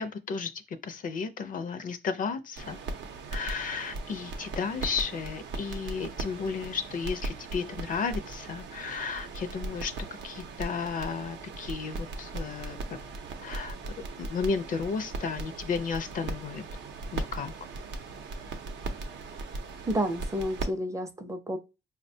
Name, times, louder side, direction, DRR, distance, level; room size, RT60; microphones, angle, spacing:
voice 1, 0.0-2.8 3.3-9.9 10.2-12.8 13.4-16.6 17.1-17.5, left 5 dB, 50° left, 0.4 m, -33 dB
sound 1, 2.6-20.6, right 3 dB, 85° right, 0.6 m, -38 dB
voice 2, 19.9-21.6, equal, 15° right, 0.5 m, -30 dB
4.7 x 2.1 x 2.6 m
cardioid pair, 95°, 18 cm